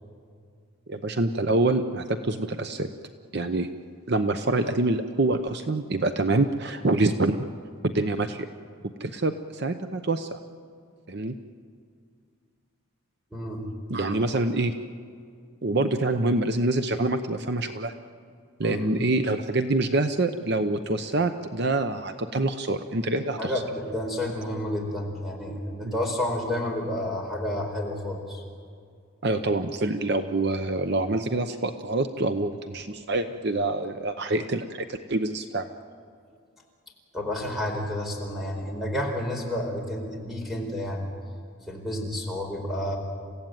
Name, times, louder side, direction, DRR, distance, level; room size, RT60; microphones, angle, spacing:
voice 1, 0.9-2.9 3.3-3.7 4.1-7.4 7.8-8.4 9.0-10.4 11.1-11.3 13.9-14.7 15.6-17.9 18.6-23.5 25.8-25.9 29.2-35.7, right 2 dB, 50° right, 8 dB, 0.8 m, -26 dB
voice 2, 13.3-13.6 18.6-18.9 23.4-28.4 37.1-41.1 41.7-43.0, left 1 dB, ahead, 0 dB, 4.4 m, -30 dB
29.5 x 16.0 x 9.1 m, 2.2 s
head